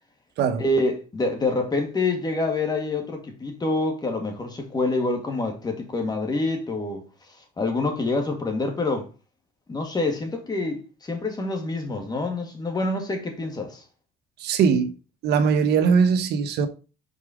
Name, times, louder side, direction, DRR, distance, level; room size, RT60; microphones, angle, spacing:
voice 1, 0.6-7.0 7.6-9.1 9.7-13.8, left 2 dB, 25° left, 1.9 m, -26 dB
voice 2, 14.4-14.9 15.2-16.7, right 6 dB, 75° right, 0.9 m, -20 dB
5.4 x 4.7 x 4.9 m
cardioid pair, 110°, 17 cm